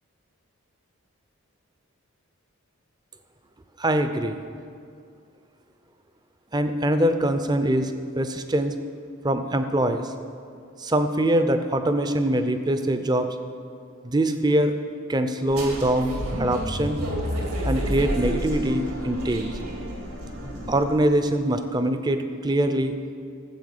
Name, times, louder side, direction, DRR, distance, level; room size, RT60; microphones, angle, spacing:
voice 1, 3.8-4.4 6.5-8.7 9.2-10.1 10.8-13.4 14.0-14.8 15.1-16.1 16.4-17.0 17.7-19.5 20.7-23.0, right 1 dB, 20° right, 9 dB, 0.5 m, -23 dB
sound 1, 15.5-21.1, equal, 80° right, 2.7 m, -30 dB
13.0 x 7.9 x 6.6 m, 2.4 s
head